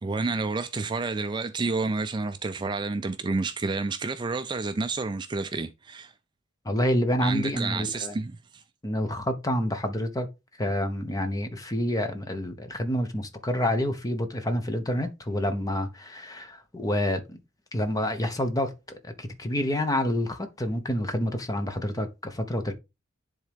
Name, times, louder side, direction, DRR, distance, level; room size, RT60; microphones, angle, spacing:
voice 1, 0.0-6.1 7.2-8.6, right 3 dB, 20° right, 0.3 m, -30 dB
voice 2, 6.6-8.2 8.8-10.3 10.6-17.4 17.7-22.7, left 1 dB, 15° left, 0.8 m, -28 dB
10.0 x 3.6 x 3.5 m
head